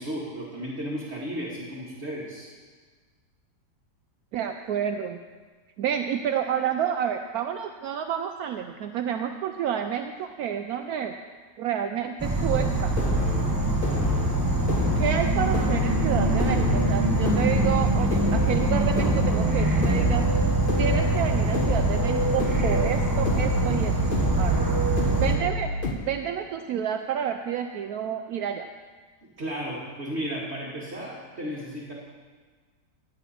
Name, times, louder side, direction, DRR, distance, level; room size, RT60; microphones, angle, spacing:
voice 1, 0.0-2.5 29.2-31.9, equal, 40° right, -5 dB, 2.0 m, -34 dB
voice 2, 4.3-5.2 5.8-11.1 11.6-13.0 14.9-20.3 20.8-24.0 24.3-24.6 25.1-25.7 26.0-28.7, right 9 dB, 70° right, 6 dB, 1.0 m, -29 dB
Insect / Frog, 12.2-25.4, right 2 dB, 15° right, 1.1 m, -24 dB
sound 1, 12.5-25.9, left 2 dB, 35° left, 1.1 m, -29 dB
14.0 x 9.3 x 4.3 m, 1.4 s
omnidirectional pair, 1.8 m